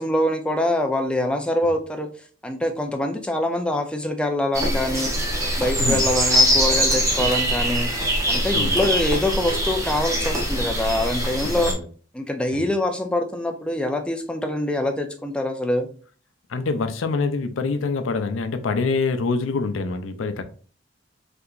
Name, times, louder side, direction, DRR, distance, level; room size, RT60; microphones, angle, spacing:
voice 1, 0.0-2.1 2.4-5.1 5.6-11.7 12.1-15.9, left 1 dB, 5° left, 4 dB, 0.4 m, -24 dB
sound 1, 4.5-11.7, equal, 15° right, 0.7 m, -22 dB
voice 2, 16.5-20.4, left 4 dB, 75° left, 8 dB, 0.4 m, -25 dB
3.4 x 2.8 x 2.4 m, 0.42 s
head